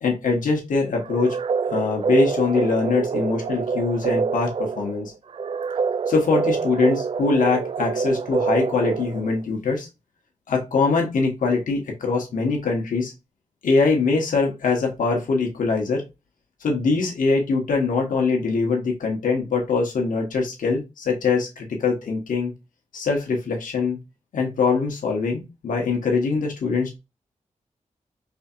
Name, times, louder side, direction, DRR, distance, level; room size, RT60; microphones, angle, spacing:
voice 1, 0.0-1.4 1.7-5.1 6.1-9.9 10.5-13.1 13.6-16.0 16.6-22.5 22.9-24.0 24.3-27.0, left 4 dB, 90° left, 1 dB, 1.2 m, -23 dB
sound 1, 1.0-9.4, right 5 dB, 45° right, 0.4 m, -26 dB
4.8 x 2.8 x 2.4 m, 0.25 s
cardioid pair, 75°, 13 cm